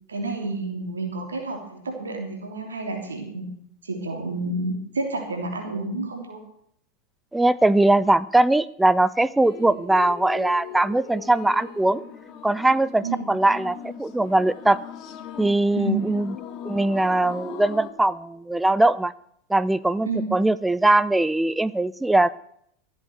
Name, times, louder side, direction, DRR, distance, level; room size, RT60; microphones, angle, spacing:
voice 1, 0.1-3.5 3.8-6.4 9.6-9.7 13.0-13.3 15.8-16.0 20.0-20.2, right 2 dB, 90° right, 3 dB, 3.2 m, -29 dB
voice 2, 7.3-12.0 12.4-14.8 15.4-16.3 16.6-19.1 19.5-22.4, right 2 dB, 5° right, 17 dB, 0.5 m, -21 dB
sound 1, 9.4-17.9, left 9 dB, 45° left, 1.9 m, -39 dB
14.5 x 8.1 x 8.0 m, 0.69 s
hypercardioid pair, 90°, 0 cm